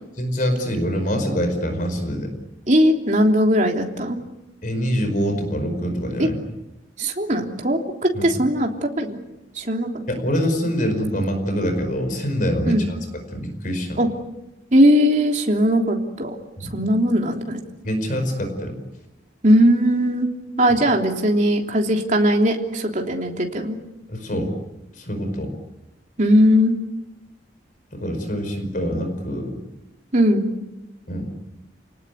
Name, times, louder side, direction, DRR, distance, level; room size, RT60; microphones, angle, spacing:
voice 1, 0.2-2.3 4.6-6.4 8.1-8.4 10.1-13.0 13.3-14.0 16.6-16.7 17.8-18.8 24.1-24.5 25.0-25.5 27.9-29.6 31.1-31.3, equal, 45° left, 7 dB, 5.1 m, -25 dB
voice 2, 2.7-4.2 6.2-6.3 7.0-9.2 9.6-9.9 12.7-12.9 14.0-14.1 14.7-16.3 16.7-17.6 19.4-20.3 20.6-23.8 26.2-26.8 30.1-30.5, equal, 40° right, 2 dB, 3.4 m, -19 dB
30.0 x 19.0 x 9.5 m, 0.96 s
head